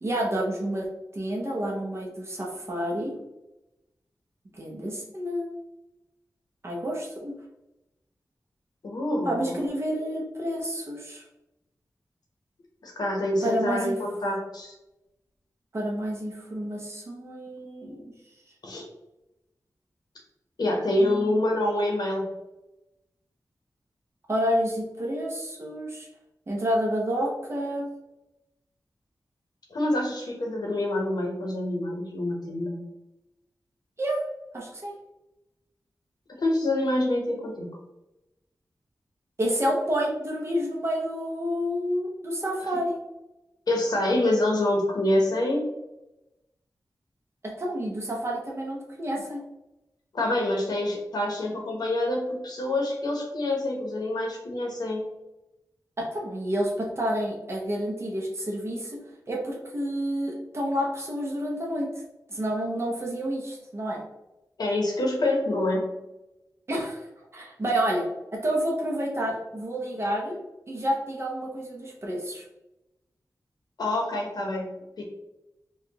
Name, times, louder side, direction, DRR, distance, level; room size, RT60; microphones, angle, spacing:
voice 1, 0.0-3.2 4.5-5.6 6.6-7.3 9.2-11.2 13.4-14.0 15.7-18.1 21.0-21.4 24.3-26.1 26.5-27.8 34.0-34.2 34.5-34.9 39.4-43.0 47.6-49.4 56.0-59.0 59.3-61.9 62.3-64.0 66.7-67.0 67.3-68.1 68.3-70.4 70.7-72.4, equal, 40° right, -2 dB, 0.7 m, -29 dB
voice 2, 8.8-9.5 12.8-14.7 18.6-18.8 20.6-22.3 29.7-32.8 36.4-37.7 43.7-45.6 50.1-55.1 64.6-65.9 73.8-74.7 75.0-75.1, left 1 dB, 70° left, 0 dB, 0.8 m, -26 dB
4.4 x 2.3 x 2.9 m, 0.95 s
wide cardioid pair, 105°, 7 cm